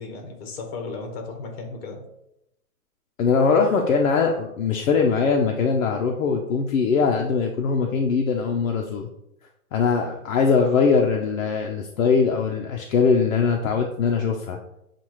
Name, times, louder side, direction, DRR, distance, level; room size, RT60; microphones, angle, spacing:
voice 1, 0.0-2.0, left 3 dB, 45° left, 3 dB, 1.1 m, -35 dB
voice 2, 3.2-9.1 9.7-14.6, left 5 dB, 65° left, 2 dB, 0.7 m, -21 dB
7.0 x 2.5 x 3.0 m, 0.83 s
hypercardioid pair, 165°, 44 cm